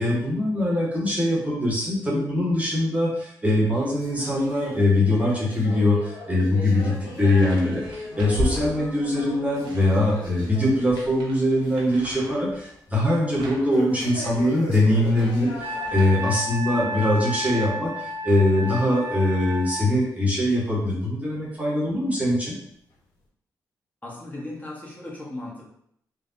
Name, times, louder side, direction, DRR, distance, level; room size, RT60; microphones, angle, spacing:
voice 1, 0.0-22.5, left 1 dB, 20° right, -4 dB, 1.1 m, -22 dB
sound 1, 3.7-11.3 11.6-11.9 12.3-12.4 13.7-16.4 16.8-17.0 17.7-17.8 18.6-18.7 19.5-19.6, left 2 dB, 70° left, 0.7 m, -38 dB
sound 2, 7.3-9.2 9.6-16.3, left 1 dB, 80° right, 0.7 m, -36 dB
Wind instrument woodwind instrument, 15.6-19.9, equal, 40° right, 1.1 m, -32 dB
voice 2, 16.7-17.1 24.0-25.7, left 1 dB, 20° left, -5 dB, 1.3 m, -37 dB
3.3 x 2.1 x 2.7 m, 0.70 s
hypercardioid pair, 45°, 8 cm